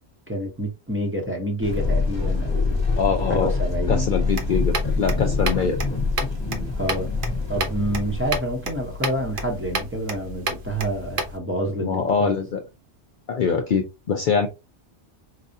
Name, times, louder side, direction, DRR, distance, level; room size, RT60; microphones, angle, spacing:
voice 1, 0.3-2.8 3.3-4.1 6.7-7.1 7.5-12.3, right 1 dB, 10° right, 0.9 m, -28 dB
sound 1, 1.6-8.4, left 3 dB, 25° left, 0.9 m, -25 dB
voice 2, 3.0-3.5 3.9-5.8 11.8-12.6 13.3-14.5, left 6 dB, 55° left, 0.6 m, -23 dB
sound 2, 4.3-11.4, right 2 dB, 55° right, 0.9 m, -32 dB
4.7 x 2.3 x 2.7 m
omnidirectional pair, 1.2 m